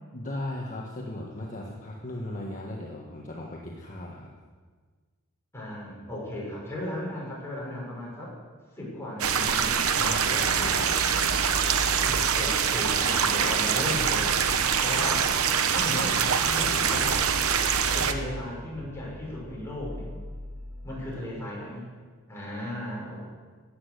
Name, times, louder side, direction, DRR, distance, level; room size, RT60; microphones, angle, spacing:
voice 1, 0.1-4.3 10.0-11.0, left 1 dB, 35° left, -2 dB, 1.4 m, -37 dB
voice 2, 5.5-8.3 8.7-10.7 12.0-15.3 15.7-17.2 17.9-20.1 20.8-21.8 22.3-23.2, left 1 dB, 10° left, -5 dB, 5.7 m, -36 dB
sound 1, 9.2-18.1, right 7 dB, 70° right, 0.9 m, -24 dB
sound 2, 9.4-21.1, left 1 dB, 25° right, 3.6 m, -40 dB
14.5 x 10.0 x 6.6 m, 1.5 s
head